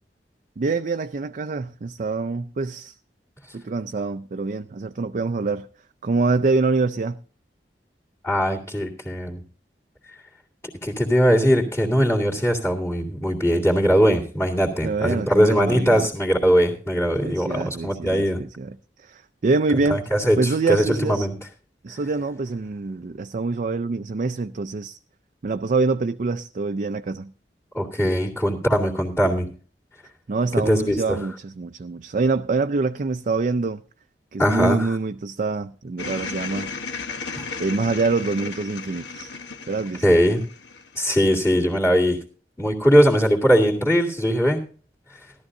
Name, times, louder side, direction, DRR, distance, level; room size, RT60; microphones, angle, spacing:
voice 1, 0.6-2.9 3.5-5.7 6.0-7.2 14.8-16.1 17.2-20.0 20.4-21.3 21.8-25.0 25.4-27.3 30.3-33.8 34.3-36.7 37.6-39.3 39.7-40.0, right 3 dB, 45° right, 0.4 m, -25 dB
voice 2, 8.2-9.4 10.8-18.4 19.7-21.3 27.7-29.5 30.7-31.2 34.4-34.9 37.4-37.5 40.0-40.4 41.0-42.2 42.6-44.6, equal, 15° left, 2.4 m, -20 dB
sound 1, 36.0-41.4, left 4 dB, 80° left, 1.1 m, -35 dB
17.0 x 12.5 x 2.6 m
head